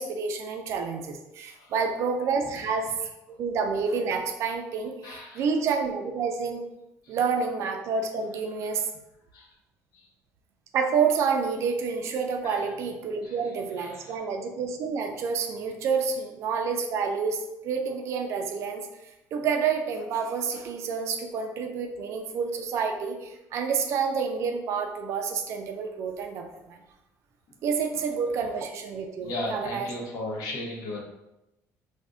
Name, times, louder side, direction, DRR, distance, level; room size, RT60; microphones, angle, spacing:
voice 1, 0.0-6.6 7.1-8.8 10.7-18.9 19.3-26.8 27.6-29.9, right 5 dB, 50° right, 4 dB, 0.3 m, -29 dB
voice 2, 1.5-1.9 2.4-3.1 4.7-5.5 7.0-7.2 8.3-8.4 8.7-8.8 9.3-9.5 9.9-10.1 12.4-12.7 13.2-14.2 16.2-16.3 27.9-28.1 28.4-28.5 29.2-31.0, left 1 dB, 70° left, -2 dB, 0.7 m, -38 dB
2.5 x 2.1 x 3.5 m, 0.92 s
cardioid pair, 180°, 6 cm